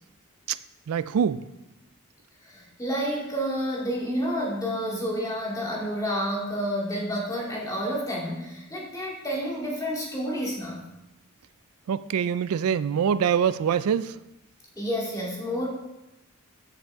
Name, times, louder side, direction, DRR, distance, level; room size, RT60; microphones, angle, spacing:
voice 1, 0.9-1.4 11.9-14.2, right 7 dB, 80° right, 15 dB, 0.3 m, -24 dB
voice 2, 2.4-10.8 14.8-15.7, equal, 15° left, -4 dB, 2.2 m, -29 dB
13.5 x 6.6 x 3.5 m, 0.95 s
head